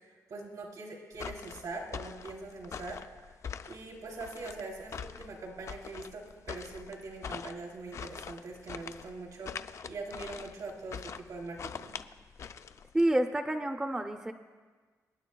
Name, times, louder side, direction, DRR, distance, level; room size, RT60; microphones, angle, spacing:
voice 1, 0.3-3.0 3.7-9.5 9.9-12.0, right 3 dB, 70° right, 0 dB, 2.9 m, -42 dB
sound 1, 1.1-13.1, left 6 dB, 50° left, 0.4 m, -43 dB
voice 2, 12.9-14.3, right 1 dB, 10° right, 6 dB, 0.5 m, -28 dB
26.0 x 10.0 x 2.3 m, 1.4 s
wide cardioid pair, 150°, 6 cm